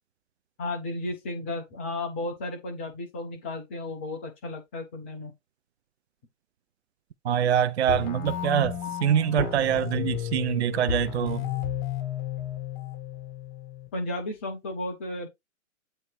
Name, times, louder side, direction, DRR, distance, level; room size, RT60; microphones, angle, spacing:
voice 1, 0.6-5.3 8.9-9.0 13.9-15.3, left 2 dB, 10° left, 0.4 m, -34 dB
voice 2, 7.2-11.4, right 9 dB, 55° right, 0.5 m, -25 dB
sound 1, 7.9-13.9, left 9 dB, 35° left, 1.9 m, -33 dB
7.6 x 2.8 x 4.7 m
figure-of-eight pair, 125°, 41 cm